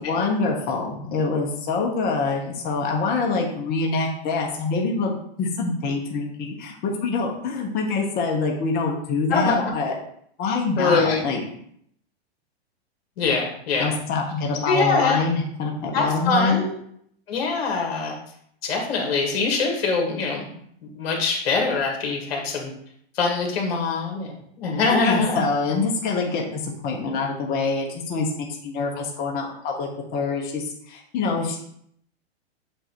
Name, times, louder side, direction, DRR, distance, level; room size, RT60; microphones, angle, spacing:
voice 1, 0.0-9.9 10.4-11.4 13.8-16.6 24.8-31.7, left 4 dB, 30° left, 0 dB, 1.2 m, -25 dB
voice 2, 9.3-9.7 10.8-11.2 13.2-13.9 14.6-15.2 15.9-16.7 17.3-18.1 18.6-20.5 20.8-22.7 23.2-24.3 24.6-25.5, left 4 dB, 65° left, 1 dB, 2.0 m, -23 dB
7.8 x 2.7 x 4.6 m, 0.68 s
hypercardioid pair, 135°, 32 cm